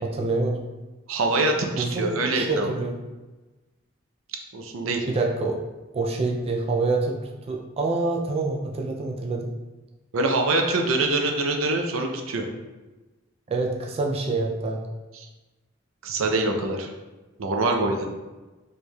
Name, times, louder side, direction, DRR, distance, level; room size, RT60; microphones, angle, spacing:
voice 1, 0.0-0.6 1.8-3.0 5.1-5.6 5.9-9.5 13.5-14.8, right 3 dB, 30° right, 0 dB, 0.3 m, -26 dB
voice 2, 1.1-2.7 4.5-5.1 10.1-12.5 15.2-15.3 16.0-16.9 17.4-18.1, right 2 dB, 80° right, 3 dB, 0.5 m, -24 dB
4.3 x 3.2 x 2.3 m, 1.2 s
head